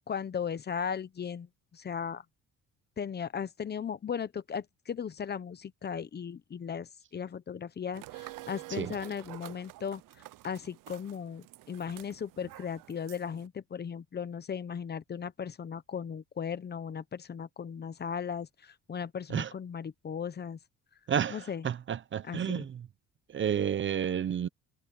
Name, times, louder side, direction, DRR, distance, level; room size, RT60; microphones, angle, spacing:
voice 1, 0.1-1.5 1.7-2.2 3.0-10.0 10.4-20.6 21.3-21.6 22.3-22.6, left 7 dB, 30° left, 0.9 m, -37 dB
sound 1, 7.9-13.5, right 18 dB, 75° right, 0.7 m, -48 dB
voice 2, 21.1-22.9 23.3-24.5, right 8 dB, 35° right, 0.7 m, -31 dB
cardioid pair, 140°, 33 cm